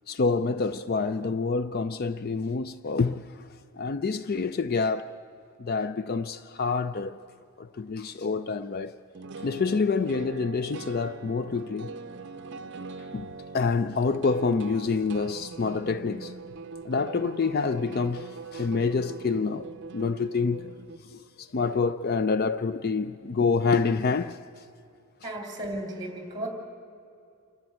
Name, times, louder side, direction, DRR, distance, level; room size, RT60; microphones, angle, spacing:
voice 1, 0.1-3.2 3.8-5.1 5.6-7.2 7.6-8.9 9.4-11.9 13.1-13.3 13.5-16.3 16.8-19.7 19.9-20.7 21.1-24.4, left 4 dB, 45° left, 0.4 m, -27 dB
sound 1, 5.0-5.1 8.4-8.5 9.1-21.0, right 4 dB, 50° right, 0.6 m, -42 dB
voice 2, 25.2-26.5, right 1 dB, 20° right, 2.8 m, -34 dB
27.0 x 12.0 x 8.8 m
head